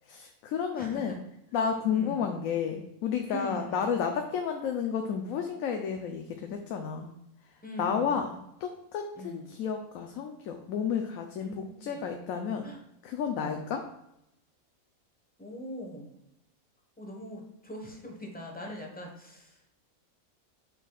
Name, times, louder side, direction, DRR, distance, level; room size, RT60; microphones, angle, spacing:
voice 1, 0.1-1.2 1.5-7.1 7.5-12.7 13.0-13.8, left 7 dB, 75° left, 4 dB, 1.0 m, -32 dB
voice 2, 0.8-1.2 1.9-2.3 3.3-3.9 7.6-8.2 9.2-9.5 11.4-12.1 12.6-12.8 13.4-13.7 15.4-16.1 17.0-19.8, equal, 5° left, 0 dB, 1.1 m, -42 dB
6.7 x 6.2 x 2.4 m, 0.84 s
omnidirectional pair, 1.5 m